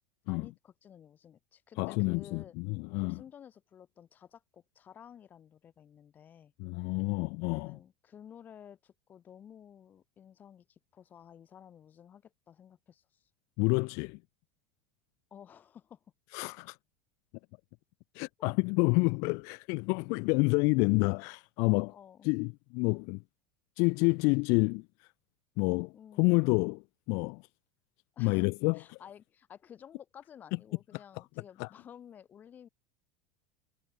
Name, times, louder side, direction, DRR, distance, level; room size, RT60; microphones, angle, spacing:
voice 1, 0.3-2.5 3.0-6.5 7.5-13.3 15.3-16.0 18.4-18.5 21.9-22.3 25.9-26.5 28.1-28.4 28.7-32.7, left 9 dB, 30° left, 7.9 m, -53 dB
voice 2, 1.8-3.2 6.6-7.8 13.6-14.2 16.3-16.8 18.1-21.9 22.2-23.2 23.8-25.1 25.6-25.9 26.2-26.8 27.1-27.4 28.2-29.0 31.6-31.7, left 32 dB, 60° left, 1.1 m, -28 dB
supercardioid pair, 135°, 6 cm